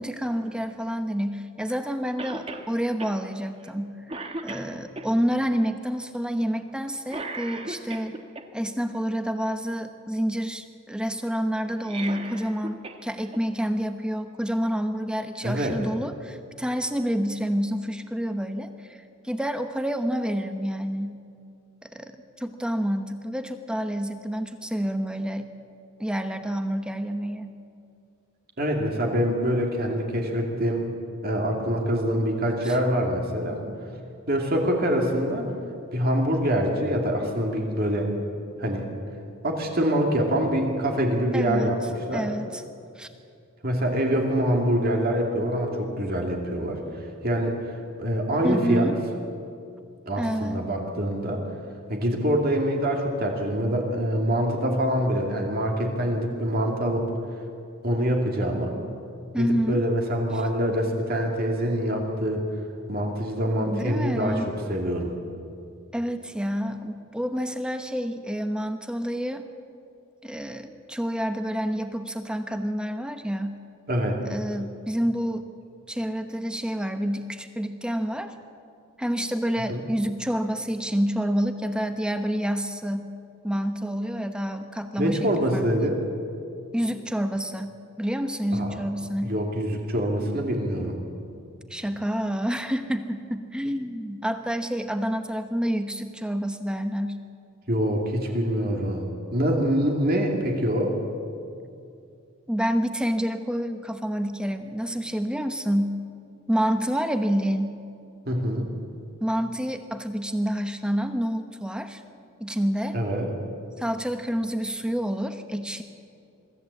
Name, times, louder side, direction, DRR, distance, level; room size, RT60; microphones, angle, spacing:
voice 1, 0.0-4.0 4.4-8.2 8.5-19.0 19.2-21.2 21.8-22.1 22.4-25.5 26.0-27.5 32.6-32.8 41.3-41.8 42.1-42.6 43.0-43.1 48.4-48.9 50.2-50.6 59.3-59.8 63.6-64.5 65.9-69.4 70.2-73.6 74.2-75.5 75.9-78.3 79.0-83.1 83.4-85.7 86.7-89.4 91.7-97.1 102.5-106.0 106.5-107.8 109.2-112.0 112.4-113.0 113.8-115.8, equal, 5° right, 8 dB, 0.9 m, -28 dB
Cough, 2.2-2.7 3.0-3.1 3.6-3.8 4.1-5.1 7.1-8.4 11.7-13.0 13.3-13.4 14.5-14.6, right 2 dB, 25° right, 1.3 m, -36 dB
voice 2, 15.4-15.8 28.6-30.9 31.2-33.6 34.3-35.5 35.9-38.1 38.6-38.9 39.4-41.8 42.1-42.3 43.6-47.6 48.0-48.9 50.0-51.4 51.9-57.1 57.8-58.7 59.4-62.4 62.9-64.4 64.7-65.1 73.9-74.2 79.7-79.8 85.0-86.0 88.5-88.8 89.2-91.0 97.7-100.9 108.3-108.7 112.9-113.3, equal, 45° right, 1 dB, 2.4 m, -25 dB
23.0 x 14.0 x 8.3 m, 2.5 s
head